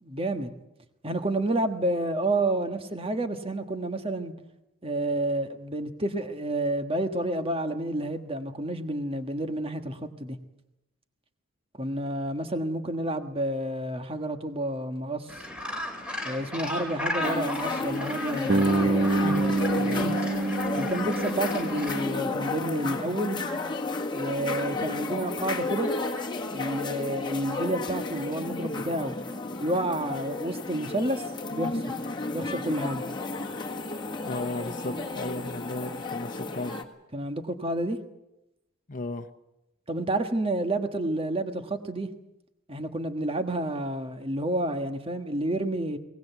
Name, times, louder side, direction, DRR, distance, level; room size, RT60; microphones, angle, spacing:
voice 1, 0.0-0.5 1.0-4.3 4.8-10.4 11.8-15.4 16.2-18.9 20.0-20.1 20.7-23.4 24.1-25.9 26.5-29.2 29.6-31.2 31.5-31.9 32.3-33.0 37.1-38.0 39.9-42.1 42.7-46.0, right 1 dB, 25° right, 1.5 m, -29 dB
Gull seagull, 15.3-22.0, left 1 dB, 5° right, 3.9 m, -36 dB
sound 1, 17.2-36.8, left 3 dB, 20° left, 1.7 m, -32 dB
Bass guitar, 18.5-22.6, right 3 dB, 50° right, 0.8 m, -27 dB
voice 2, 19.2-20.2 34.3-36.8 38.9-39.3, left 2 dB, 40° left, 1.0 m, -35 dB
22.5 x 19.0 x 8.2 m
head